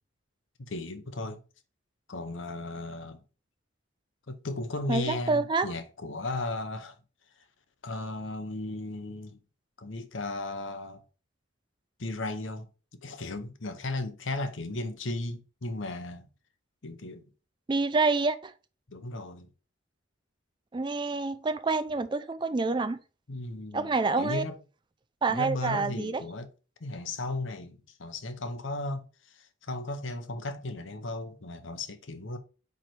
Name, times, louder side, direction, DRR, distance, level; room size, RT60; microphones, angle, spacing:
voice 1, 0.6-1.4 2.1-3.2 4.3-6.9 7.8-9.4 9.8-11.0 12.0-12.7 13.0-16.3 16.8-17.2 18.9-19.5 23.3-24.6 25.3-26.5 26.8-32.4, left 2 dB, 75° left, 0.9 m, -35 dB
voice 2, 4.9-5.7 17.7-18.5 20.7-23.0 23.7-24.4 25.2-26.2, right 3 dB, 25° right, 0.3 m, -27 dB
4.9 x 4.6 x 4.5 m
head